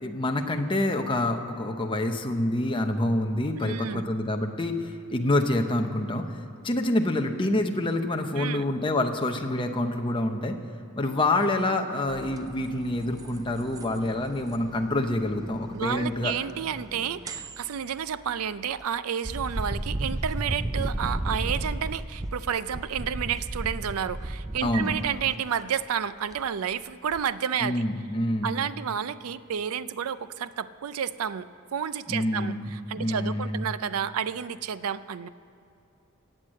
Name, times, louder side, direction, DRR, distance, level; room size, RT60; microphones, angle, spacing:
voice 1, 0.0-6.4 6.6-10.6 11.0-16.3 24.6-25.0 27.6-28.5 32.1-32.7 33.0-33.6, left 1 dB, 20° left, 4 dB, 0.8 m, -27 dB
voice 2, 3.6-4.1 8.4-8.7 15.7-27.8 28.4-35.3, right 8 dB, 75° right, 15 dB, 0.4 m, -31 dB
sound 1, 12.1-18.8 19.2-25.3 26.3-26.7 27.1-27.2, right 1 dB, 15° right, 0.4 m, -35 dB
16.5 x 8.0 x 7.6 m, 2.7 s
head